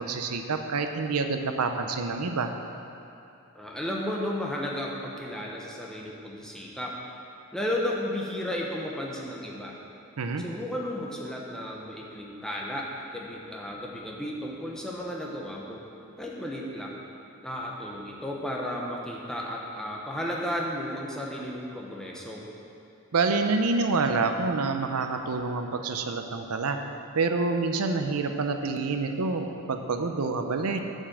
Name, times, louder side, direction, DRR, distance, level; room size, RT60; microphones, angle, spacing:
voice 1, 0.0-2.5 10.2-10.4 23.1-26.8 27.1-30.9, right 4 dB, 85° right, 6 dB, 0.6 m, -27 dB
voice 2, 3.5-7.0 7.5-9.8 10.4-15.8 16.2-17.0 17.4-22.4, left 1 dB, 5° left, -3 dB, 0.9 m, -33 dB
8.4 x 5.5 x 7.3 m, 2.8 s
head